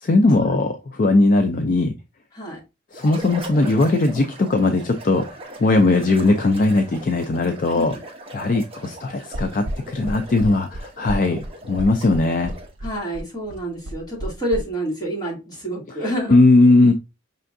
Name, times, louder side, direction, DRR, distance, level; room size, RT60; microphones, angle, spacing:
voice 1, 0.0-1.9 2.9-5.3 5.6-8.0 8.3-12.5 16.3-16.9, left 2 dB, 40° left, 0.4 m, -18 dB
sound 1, 2.9-12.8, right 1 dB, 25° right, 0.9 m, -39 dB
sound 2, 9.3-14.6, right 1 dB, 70° right, 0.6 m, -31 dB
voice 2, 12.8-16.4, equal, 20° left, 2.2 m, -28 dB
5.6 x 3.4 x 2.5 m
head